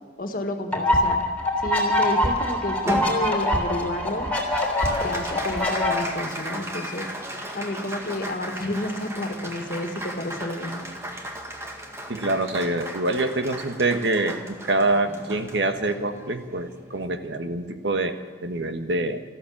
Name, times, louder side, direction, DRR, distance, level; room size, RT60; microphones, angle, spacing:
voice 1, 0.2-1.2 1.6-4.3 5.0-7.1 7.5-10.9, left 1 dB, 50° left, 5 dB, 1.9 m, -30 dB
sound 1, 0.7-5.9, left 1 dB, 10° left, 3.4 m, -24 dB
Applause, 2.9-17.5, equal, 15° right, 1.8 m, -35 dB
voice 2, 12.1-19.2, right 2 dB, 90° right, 7 dB, 1.4 m, -25 dB
14.0 x 14.0 x 7.3 m, 1.5 s
head